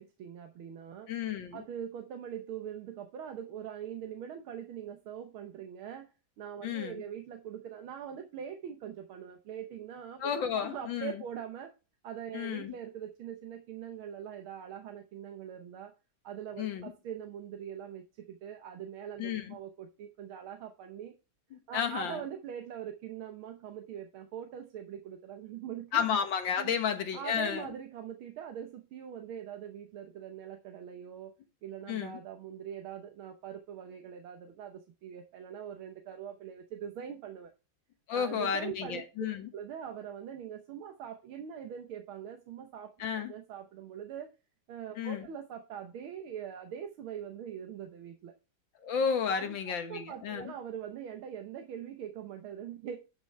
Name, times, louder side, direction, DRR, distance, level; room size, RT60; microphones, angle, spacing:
voice 1, 0.0-1.1 1.5-11.7 12.0-15.9 16.2-21.1 21.7-26.1 26.6-26.8 27.1-31.3 31.6-37.5 38.1-39.3 39.5-43.0 43.3-44.3 44.7-48.3 49.3-49.6 49.9-53.0, right 9 dB, 80° right, 1.8 m, -42 dB
voice 2, 1.1-1.6 6.6-7.0 10.2-11.1 12.3-12.7 16.6-16.9 19.2-19.5 21.5-22.2 25.9-27.7 31.9-32.2 38.1-39.5 43.0-43.3 45.0-45.3 48.8-50.5, left 7 dB, 65° left, 2.0 m, -32 dB
11.0 x 6.1 x 3.2 m
omnidirectional pair, 2.3 m